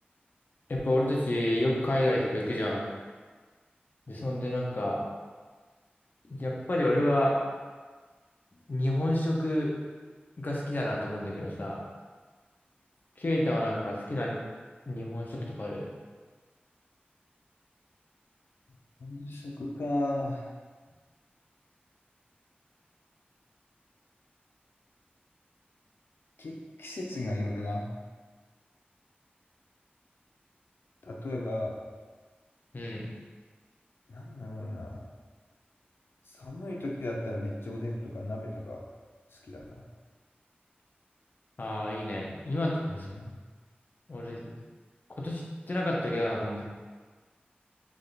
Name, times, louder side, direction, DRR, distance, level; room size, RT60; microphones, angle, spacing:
voice 1, 0.7-2.9 4.1-5.0 6.2-7.4 8.7-9.7 10.4-11.8 13.2-14.3 14.9-15.9 32.7-33.1 41.6-43.1 44.1-44.5 45.2-46.6, left 1 dB, 55° left, -3 dB, 0.9 m, -29 dB
voice 2, 19.0-20.5 26.4-27.9 31.0-31.8 34.1-35.1 36.2-38.8 39.3-39.9 42.9-43.4, left 1 dB, 90° left, -1 dB, 0.7 m, -35 dB
3.6 x 3.2 x 4.0 m, 1.4 s
wide cardioid pair, 55°, 4 cm